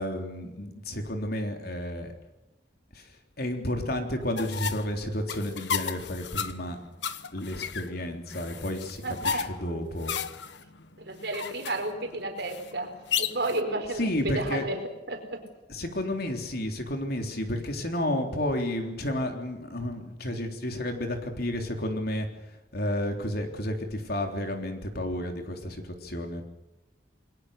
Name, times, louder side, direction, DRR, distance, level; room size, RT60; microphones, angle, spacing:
voice 1, 0.0-2.1 2.9-3.1 3.4-6.8 7.3-10.2 14.0-14.6 15.7-22.3 22.7-26.4, left 1 dB, 60° left, 4 dB, 3.7 m, -31 dB
sound 1, 4.4-13.6, left 7 dB, 75° left, 1.2 m, -34 dB
voice 2, 9.0-9.4 11.0-14.8 15.1-15.4, right 2 dB, 65° right, 5 dB, 4.5 m, -32 dB
29.0 x 21.0 x 6.8 m, 1.0 s
head